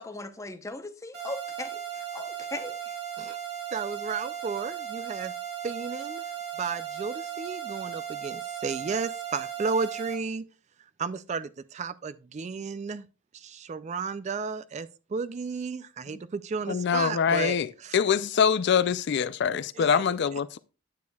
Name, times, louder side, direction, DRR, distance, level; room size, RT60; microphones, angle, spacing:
voice 1, 0.0-2.9, left 2 dB, 15° left, 0.7 m, -39 dB
sound 1, 1.1-10.1, right 9 dB, 70° right, 3.0 m, -36 dB
voice 2, 3.7-5.3 5.6-6.2 6.6-10.5 11.0-13.1 13.3-17.6 17.8-18.0 19.8-20.0, right 5 dB, 35° right, 0.3 m, -33 dB
voice 3, 16.7-20.6, left 7 dB, 55° left, 0.4 m, -24 dB
9.5 x 8.3 x 2.3 m
head